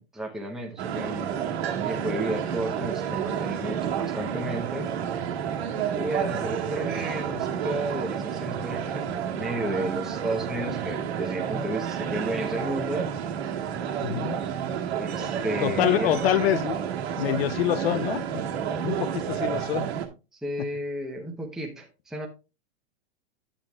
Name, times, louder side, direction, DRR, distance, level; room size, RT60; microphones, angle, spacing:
voice 1, 0.0-1.4 1.8-4.9 5.9-13.1 14.9-16.1 20.3-22.3, right 1 dB, ahead, 0.8 m, -32 dB
sound 1, 0.8-20.1, right 8 dB, 70° right, 1.8 m, -30 dB
voice 2, 14.0-14.4 15.6-16.8 17.2-18.4 18.8-19.9 20.6-20.7, left 12 dB, 65° left, 0.6 m, -26 dB
8.8 x 8.7 x 2.3 m
supercardioid pair, 150°, 33 cm